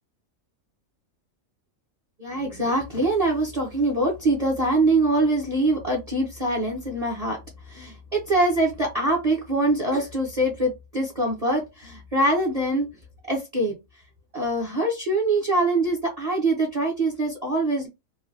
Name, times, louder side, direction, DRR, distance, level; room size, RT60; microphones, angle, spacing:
voice 1, 2.2-7.4 7.7-12.9 13.3-13.7 14.3-17.9, right 2 dB, 35° right, -1 dB, 0.7 m, -24 dB
3.1 x 2.3 x 2.6 m, 0.23 s
omnidirectional pair, 1.4 m